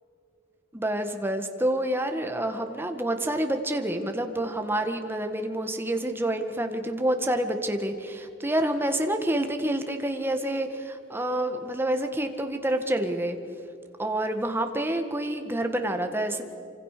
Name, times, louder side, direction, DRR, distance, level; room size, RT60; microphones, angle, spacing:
voice 1, 0.7-13.4 14.0-16.4, right 1 dB, 10° right, 6 dB, 1.7 m, -28 dB
26.0 x 26.0 x 6.8 m, 2.5 s
head